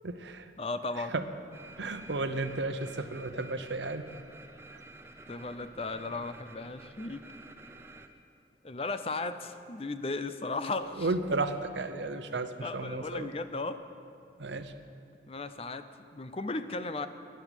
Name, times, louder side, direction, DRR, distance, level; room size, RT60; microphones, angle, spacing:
voice 1, 0.0-0.5 1.0-1.3 1.8-4.1 4.7-4.8 11.0-13.3 14.4-14.7, right 3 dB, 85° right, 9 dB, 0.9 m, -33 dB
voice 2, 0.6-1.1 5.3-7.2 8.6-11.1 12.6-13.8 15.3-17.1, left 3 dB, 30° left, 11 dB, 0.5 m, -36 dB
sound 1, 1.5-8.1, right 2 dB, 15° right, 0.6 m, -50 dB
13.0 x 10.5 x 8.2 m, 2.5 s
head